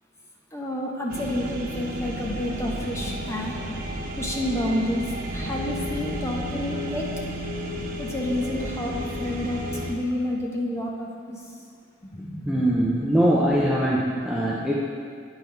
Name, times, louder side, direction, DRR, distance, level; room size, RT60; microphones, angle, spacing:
voice 1, 0.5-3.6 4.2-5.1 5.3-7.1 8.0-11.4 12.0-12.7, left 1 dB, 15° left, -1 dB, 0.9 m, -29 dB
sound 1, 1.1-9.9, right 1 dB, 50° right, 0.8 m, -32 dB
voice 2, 12.5-14.7, equal, 5° right, -6 dB, 0.6 m, -22 dB
9.1 x 5.4 x 4.5 m, 2.2 s
head